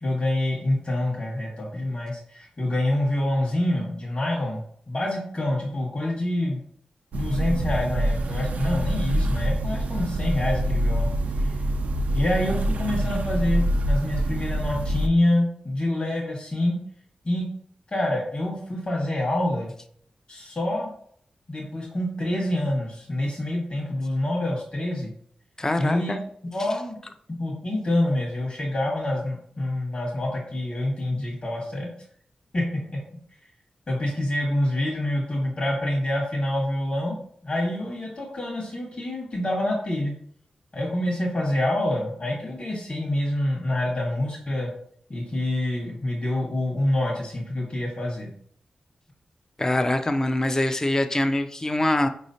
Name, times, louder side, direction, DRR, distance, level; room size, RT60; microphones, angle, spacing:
voice 1, 0.0-4.6 4.9-6.6 7.1-11.1 11.4-11.5 12.1-16.8 17.2-17.4 17.9-19.7 20.3-20.9 21.5-25.1 25.8-26.2 26.4-27.0 27.3-31.9 32.5-32.6 32.9-33.0 33.9-37.2 37.4-40.1 40.7-44.7 45.1-48.3, left 1 dB, 45° left, -3 dB, 1.4 m, -26 dB
sound 1, 7.1-15.1, right 1 dB, 85° right, 0.3 m, -25 dB
voice 2, 25.6-26.2 49.6-52.1, left 1 dB, 25° left, 8 dB, 0.4 m, -24 dB
4.8 x 3.1 x 2.7 m, 0.62 s
cardioid pair, 75°, 2 cm